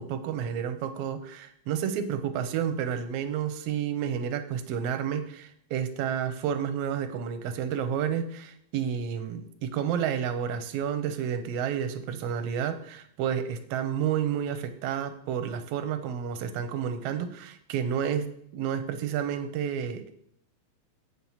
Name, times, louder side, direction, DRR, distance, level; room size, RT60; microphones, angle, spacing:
voice 1, 0.0-20.1, right 8 dB, 70° right, 9 dB, 1.6 m, -30 dB
7.9 x 5.9 x 5.6 m, 0.68 s
omnidirectional pair, 3.4 m